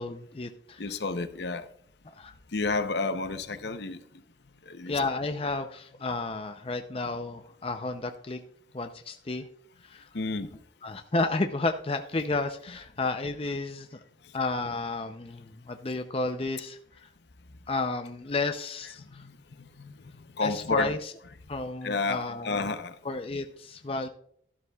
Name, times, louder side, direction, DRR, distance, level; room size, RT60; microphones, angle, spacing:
voice 1, 0.0-0.8 2.0-2.3 4.9-8.4 8.7-9.5 9.8-10.1 10.8-14.0 14.3-17.1 17.7-19.2 20.4-21.1 21.5-22.7 23.0-24.1, left 3 dB, 30° left, 0.5 m, -32 dB
voice 2, 0.8-1.7 2.5-4.0 4.7-4.9 10.1-10.5 19.1-19.3 19.6-20.9 21.8-23.0, left 3 dB, 65° left, 0.7 m, -31 dB
12.5 x 12.5 x 2.3 m
head